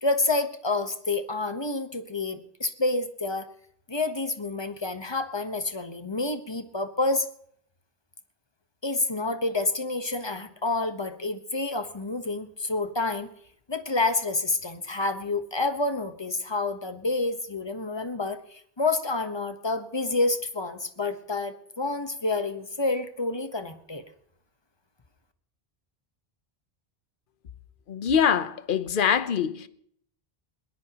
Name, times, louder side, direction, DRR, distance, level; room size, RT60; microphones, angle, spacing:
voice 1, 0.0-3.5 3.9-7.3 8.8-13.3 13.7-24.0, left 3 dB, 25° left, 1.1 m, -28 dB
voice 2, 27.9-29.7, left 7 dB, 60° left, 1.0 m, -24 dB
21.0 x 19.0 x 3.0 m
omnidirectional pair, 1.0 m